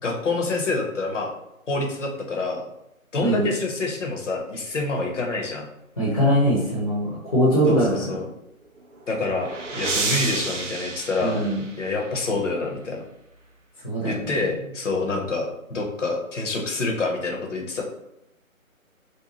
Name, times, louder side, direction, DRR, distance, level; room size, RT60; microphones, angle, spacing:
voice 1, 0.0-1.3 1.7-2.7 3.1-5.7 7.7-8.3 9.1-9.5 9.8-11.4 11.8-13.0 14.0-17.8, left 3 dB, 60° left, 1 dB, 0.8 m, -27 dB
voice 2, 3.2-3.5 6.0-8.2 11.2-11.6 13.8-14.1, equal, 25° left, -7 dB, 0.6 m, -21 dB
sound 1, 8.8-12.2, right 3 dB, 60° right, 0.6 m, -30 dB
2.7 x 2.2 x 2.9 m, 0.84 s
figure-of-eight pair, 150°, 42 cm